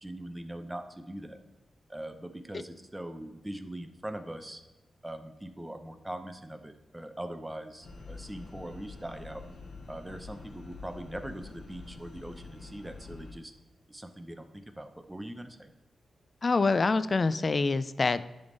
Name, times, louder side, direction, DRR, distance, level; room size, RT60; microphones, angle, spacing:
voice 1, 0.0-1.4 1.9-4.6 5.0-9.4 9.9-13.5 13.9-15.7, right 1 dB, 10° right, 8 dB, 0.7 m, -41 dB
sound 1, 7.8-13.3, left 3 dB, 70° left, 1.4 m, -46 dB
voice 2, 16.4-18.3, left 3 dB, 40° left, 14 dB, 0.3 m, -26 dB
10.5 x 3.5 x 3.9 m, 1.1 s
cardioid pair, 75°, 0 cm